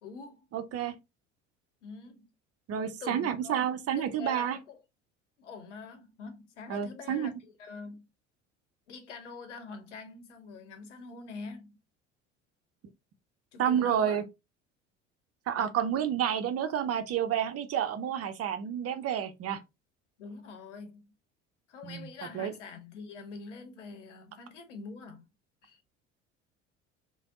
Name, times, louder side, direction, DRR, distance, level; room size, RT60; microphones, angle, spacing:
voice 1, 0.0-0.4 1.8-2.3 3.0-3.6 4.0-4.8 5.4-8.1 8.9-11.8 13.5-14.2 20.2-21.1 21.7-25.3 25.6-25.8, left 4 dB, 80° left, 0.9 m, -45 dB
voice 2, 0.5-0.9 2.7-4.6 6.7-7.3 13.6-14.2 15.5-19.6 21.8-22.1 22.3-22.5, right 9 dB, 40° right, 0.7 m, -30 dB
3.4 x 2.3 x 3.6 m
hypercardioid pair, 65°, 35 cm